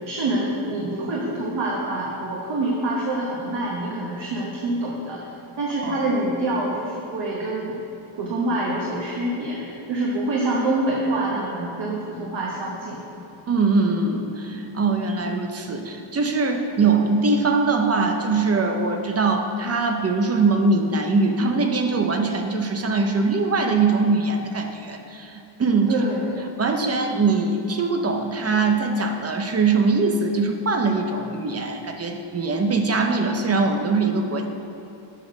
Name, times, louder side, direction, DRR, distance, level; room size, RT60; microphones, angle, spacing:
voice 1, 0.1-5.2 5.6-7.8 8.1-13.0 25.9-26.3, right 2 dB, 60° right, -4 dB, 1.2 m, -26 dB
voice 2, 13.5-26.0 26.6-34.5, right 3 dB, 30° right, 4 dB, 0.6 m, -22 dB
7.4 x 4.9 x 6.1 m, 2.8 s
wide cardioid pair, 165°, 50 cm